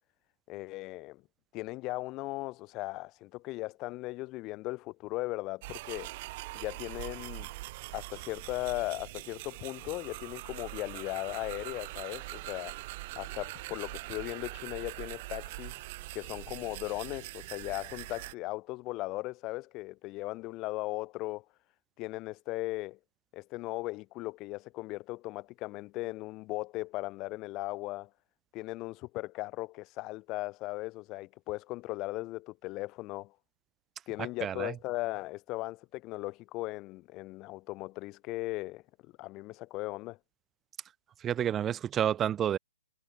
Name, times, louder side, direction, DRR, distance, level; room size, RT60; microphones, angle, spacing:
voice 1, 0.5-1.2 1.5-6.1 6.5-7.5 7.9-12.8 13.2-15.8 16.1-21.4 22.0-23.0 23.3-28.1 28.5-33.3 34.1-40.2, left 20 dB, 25° left, 0.6 m, -38 dB
sound 1, 5.6-18.3, right 20 dB, 35° right, 0.9 m, -43 dB
voice 2, 34.4-34.7 41.2-42.6, right 10 dB, 15° right, 0.3 m, -29 dB
hypercardioid pair, 145°, 0 cm